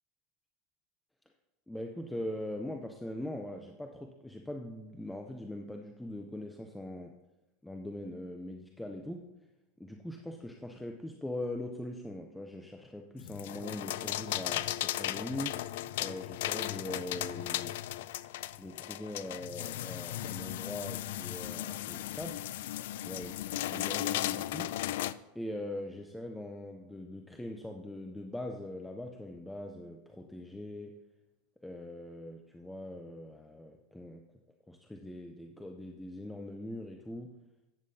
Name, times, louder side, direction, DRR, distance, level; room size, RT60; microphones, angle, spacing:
voice 1, 1.7-7.1 7.6-9.3 9.8-15.7 16.0-17.8 18.6-22.4 23.0-24.8 25.3-31.0 31.6-34.3 34.7-37.4, left 1 dB, 5° left, 3 dB, 0.5 m, -41 dB
sound 1, 13.2-25.1, left 14 dB, 70° left, 0.4 m, -36 dB
13.5 x 8.8 x 2.7 m, 0.99 s
supercardioid pair, 170°, 0 cm